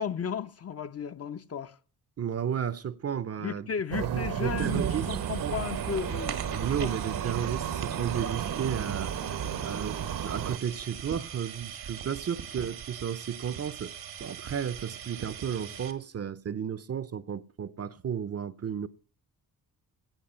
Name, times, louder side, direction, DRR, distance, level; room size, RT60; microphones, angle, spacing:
voice 1, 0.0-1.8 3.4-6.3 6.8-6.9, left 7 dB, 40° left, 0.7 m, -34 dB
voice 2, 2.2-3.7 4.0-5.1 5.4-5.6 6.5-9.2 9.6-13.9 14.2-18.9, right 8 dB, 40° right, 0.6 m, -33 dB
sound 1, 3.9-10.6, right 9 dB, 65° right, 0.9 m, -33 dB
sound 2, 4.6-15.9, right 8 dB, 85° right, 1.6 m, -41 dB
16.5 x 5.8 x 5.6 m
cardioid pair, 85°, 37 cm